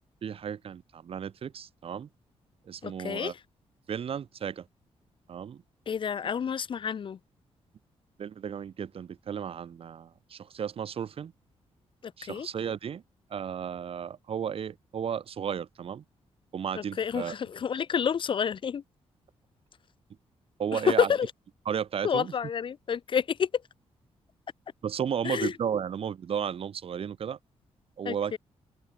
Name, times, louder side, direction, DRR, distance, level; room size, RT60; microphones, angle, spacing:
voice 1, 0.2-2.1 2.7-3.3 3.9-4.7 5.3-5.6 8.2-11.3 12.2-13.0 13.3-16.0 16.5-17.3 20.6-21.1 21.7-22.3 24.8-27.4 28.0-28.4, right 8 dB, 55° right, 0.9 m, -34 dB
voice 2, 2.8-3.3 5.9-7.2 12.0-12.5 16.7-18.8 20.7-21.3 22.0-23.5 25.2-25.5 28.0-28.4, left 7 dB, 45° left, 0.5 m, -29 dB
open air
cardioid pair, 85°, 11 cm